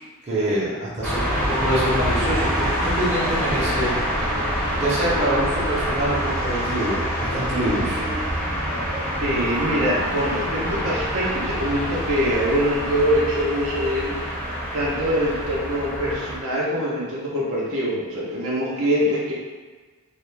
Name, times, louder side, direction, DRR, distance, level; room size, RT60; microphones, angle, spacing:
voice 1, 0.3-3.9 4.8-8.0, right 1 dB, 30° right, -8 dB, 0.7 m, -25 dB
sound 1, 1.0-16.4, equal, 5° left, 0.5 m, -26 dB
voice 2, 9.2-14.1 14.7-19.3, equal, 75° right, -5 dB, 0.6 m, -24 dB
2.4 x 2.1 x 3.1 m, 1.3 s
head